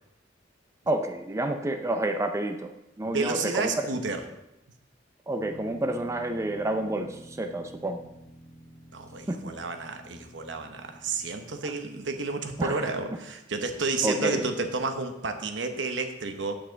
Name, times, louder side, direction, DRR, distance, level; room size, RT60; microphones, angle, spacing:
voice 1, 0.9-2.7 3.0-3.9 5.3-8.0 9.3-9.5 12.6-12.9 14.0-14.4, right 1 dB, 15° right, 6 dB, 0.5 m, -29 dB
voice 2, 3.1-4.2 8.9-16.6, right 3 dB, 75° right, 6 dB, 1.0 m, -31 dB
sound 1, 5.4-12.6, equal, 40° left, 1.2 m, -50 dB
8.6 x 7.8 x 4.0 m, 0.87 s
head